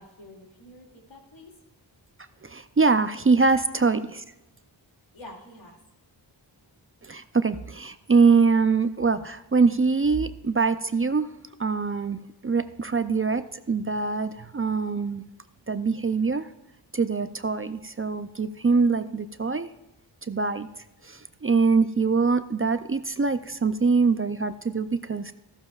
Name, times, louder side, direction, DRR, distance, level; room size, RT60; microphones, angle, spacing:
voice 1, 0.0-1.5 5.1-5.8, left 1 dB, 85° left, -1 dB, 2.6 m, -47 dB
voice 2, 2.4-4.2 7.0-11.3 11.6-15.2 15.7-16.5 16.9-19.7 20.3-20.7 21.0-25.3, right 4 dB, 30° right, 11 dB, 0.5 m, -23 dB
14.0 x 13.0 x 2.4 m, 0.95 s
wide cardioid pair, 45°, 46 cm